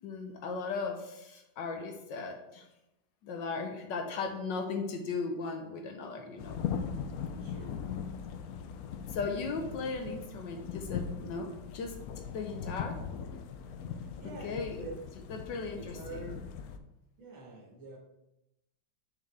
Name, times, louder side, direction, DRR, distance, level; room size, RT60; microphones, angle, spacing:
voice 1, 0.0-2.7 3.2-6.6 9.1-11.9 12.3-13.0 14.4-14.9 15.3-16.2, left 4 dB, 70° left, 4 dB, 1.4 m, -37 dB
sound 1, 6.4-16.8, left 7 dB, 85° left, 0.8 m, -40 dB
voice 2, 7.4-7.8 9.7-9.8 12.4-12.7 13.9-14.9 15.7-16.5 17.2-18.0, right 2 dB, 70° right, -2 dB, 2.5 m, -47 dB
7.3 x 5.6 x 3.4 m, 0.90 s
omnidirectional pair, 2.2 m